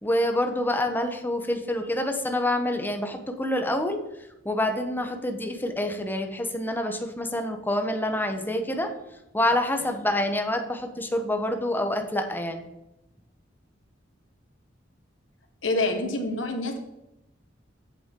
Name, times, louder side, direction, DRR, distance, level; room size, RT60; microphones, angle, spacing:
voice 1, 0.0-4.0 4.4-12.7, left 1 dB, 10° left, 5 dB, 0.9 m, -27 dB
voice 2, 15.6-16.8, left 2 dB, 90° left, 4 dB, 1.5 m, -26 dB
8.3 x 7.8 x 3.7 m, 0.89 s
head